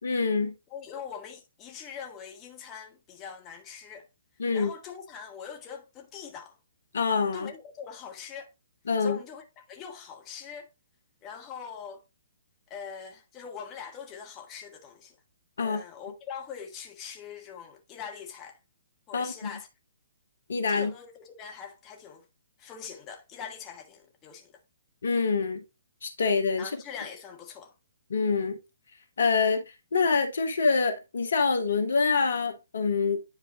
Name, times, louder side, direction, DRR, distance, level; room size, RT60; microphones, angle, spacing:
voice 1, 0.0-0.5 4.4-4.7 6.9-7.5 8.9-9.2 15.6-15.8 19.1-19.5 20.5-20.9 25.0-25.6 26.0-26.7 28.1-28.6 29.2-29.6 29.9-33.2, left 4 dB, 65° left, 1.5 m, -25 dB
voice 2, 0.7-4.1 4.5-6.6 7.3-8.5 9.0-10.7 11.2-12.0 12.7-15.2 15.6-18.6 19.1-19.7 20.7-22.2 22.6-24.6 26.6-27.7, left 7 dB, 20° left, 1.7 m, -42 dB
10.5 x 4.4 x 3.0 m
figure-of-eight pair, 130°, 0 cm